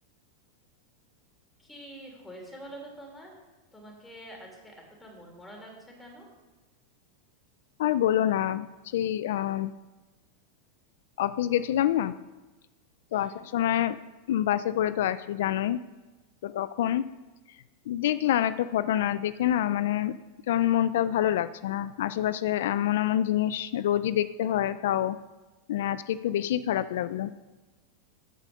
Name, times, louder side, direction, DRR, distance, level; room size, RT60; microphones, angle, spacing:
voice 1, 1.6-3.4 3.7-4.7 5.0-6.3 13.1-13.5, right 1 dB, 10° left, 0 dB, 3.3 m, -46 dB
voice 2, 7.8-8.7 8.9-9.7 11.2-12.1 13.1-14.0 14.3-15.8 16.4-17.0 17.9-20.1 20.5-25.2 25.7-27.3, left 11 dB, 75° left, 15 dB, 0.3 m, -26 dB
14.0 x 5.0 x 6.3 m, 1.2 s
supercardioid pair, 125°, 0 cm